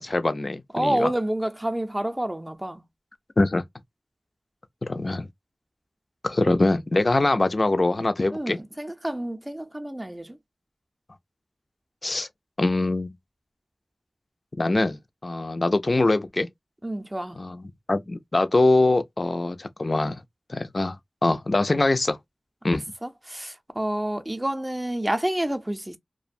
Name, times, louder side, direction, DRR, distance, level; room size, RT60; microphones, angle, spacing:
voice 1, 0.0-1.1 3.4-3.6 4.8-5.3 6.2-8.6 12.0-12.3 12.6-13.1 14.6-16.5 17.4-17.6 17.9-20.2 20.5-21.0 21.2-22.2 22.6-22.8, left 2 dB, 50° left, 0.4 m, -23 dB
voice 2, 0.7-2.8 8.3-10.4 16.8-17.4 23.0-26.0, right 1 dB, 20° right, 0.5 m, -28 dB
2.4 x 2.1 x 2.4 m
wide cardioid pair, 45°, 0 cm